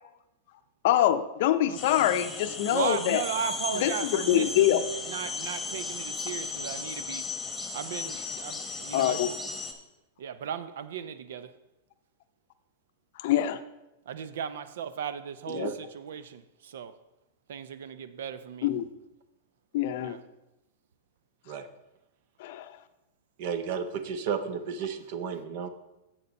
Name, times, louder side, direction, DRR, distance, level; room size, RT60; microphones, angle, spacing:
voice 1, 0.8-3.2 3.7-4.9 8.9-9.3 13.2-13.6 15.5-15.7 18.6-18.9 19.7-20.2 22.4-22.7, left 12 dB, 60° left, 0.5 m, -25 dB
sound 1, 1.8-9.7, left 4 dB, 10° left, 1.1 m, -36 dB
voice 2, 2.7-4.8 5.1-7.2 7.7-9.2 10.2-11.5 14.1-15.6 15.9-16.4 16.7-16.9 17.5-18.7 20.0-20.2, right 8 dB, 80° right, 0.6 m, -36 dB
voice 3, 23.4-25.7, right 7 dB, 55° right, 0.9 m, -33 dB
7.3 x 6.8 x 5.3 m
supercardioid pair, 140°, 0 cm